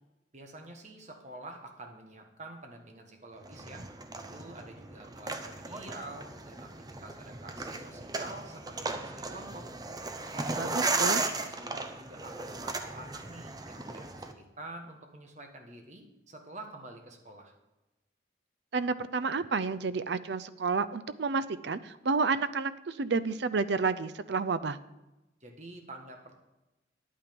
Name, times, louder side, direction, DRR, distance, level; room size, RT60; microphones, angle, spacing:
voice 1, 0.3-3.8 4.1-6.7 7.0-9.7 10.3-17.5 25.4-26.3, right 2 dB, 40° right, 3 dB, 1.5 m, -47 dB
sound 1, 3.5-14.3, right 3 dB, 20° right, 0.7 m, -36 dB
voice 2, 10.6-11.2 18.7-24.8, right 4 dB, 65° right, 14 dB, 0.5 m, -30 dB
10.0 x 8.7 x 5.3 m, 1.0 s
head